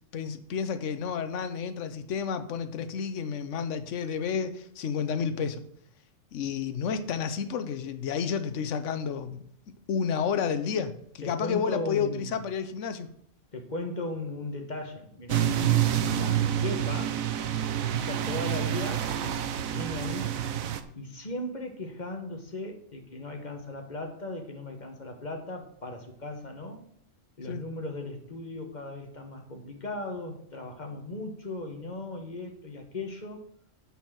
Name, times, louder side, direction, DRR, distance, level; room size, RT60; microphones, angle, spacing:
voice 1, 0.1-5.6 6.3-9.4 9.9-13.1 27.5-27.6, left 6 dB, 70° left, 9 dB, 1.1 m, -31 dB
voice 2, 11.2-12.4 13.5-15.5 16.1-17.2 17.9-20.3 20.9-26.8 27.4-33.4, left 2 dB, 35° left, 4 dB, 1.4 m, -37 dB
sound 1, 15.3-20.8, right 10 dB, 90° right, 1.2 m, -28 dB
9.0 x 4.4 x 7.4 m, 0.66 s
omnidirectional pair, 1.4 m